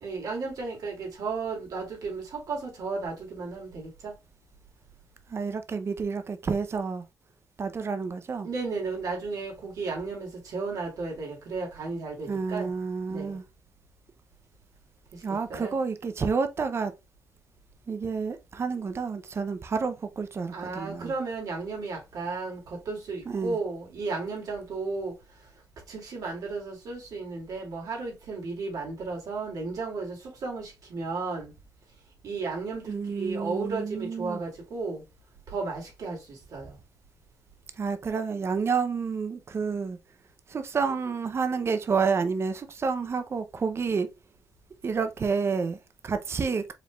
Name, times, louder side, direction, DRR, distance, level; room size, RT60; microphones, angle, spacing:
voice 1, 0.0-4.1 8.4-12.7 13.1-13.4 15.1-15.2 15.5-15.8 20.5-25.1 25.9-31.5 32.2-35.0 35.5-36.8, right 4 dB, 70° right, 2.4 m, -34 dB
voice 2, 5.3-7.1 7.6-8.5 12.3-13.4 15.2-16.9 17.9-21.1 23.3-23.6 32.9-34.4 37.7-40.0 40.5-44.1 44.8-46.7, right 5 dB, 45° right, 0.6 m, -29 dB
4.9 x 3.4 x 2.3 m
cardioid pair, 90°, 6 cm